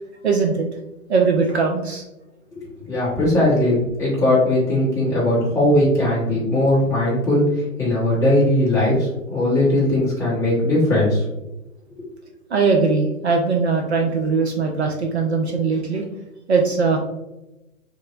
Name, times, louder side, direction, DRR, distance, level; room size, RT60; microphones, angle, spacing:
voice 1, 0.2-0.7 1.1-2.0 12.5-16.1 16.5-17.0, right 4 dB, 50° right, 2 dB, 0.5 m, -20 dB
voice 2, 2.9-11.2, left 1 dB, 5° left, -8 dB, 1.0 m, -19 dB
3.6 x 3.2 x 2.4 m, 0.96 s
figure-of-eight pair, 125°, 43 cm